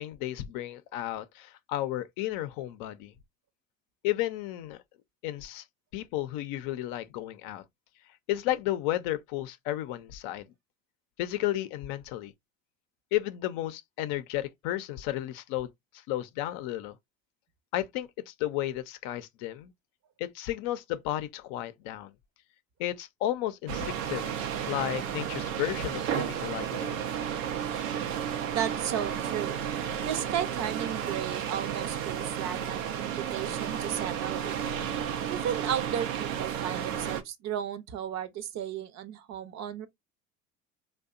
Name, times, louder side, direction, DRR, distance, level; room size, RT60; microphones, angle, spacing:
voice 1, 0.0-3.1 4.0-4.8 5.2-5.6 5.9-7.6 8.3-10.5 11.2-12.3 13.1-17.0 17.7-19.7 20.2-22.1 22.8-24.3 24.7-27.1, left 14 dB, 60° left, 0.6 m, -33 dB
sound 1, 23.7-37.2, right 9 dB, 90° right, 0.6 m, -32 dB
voice 2, 28.5-29.6 30.1-34.6 35.3-39.9, right 9 dB, 45° right, 0.6 m, -34 dB
2.6 x 2.2 x 2.4 m
hypercardioid pair, 75°, 38 cm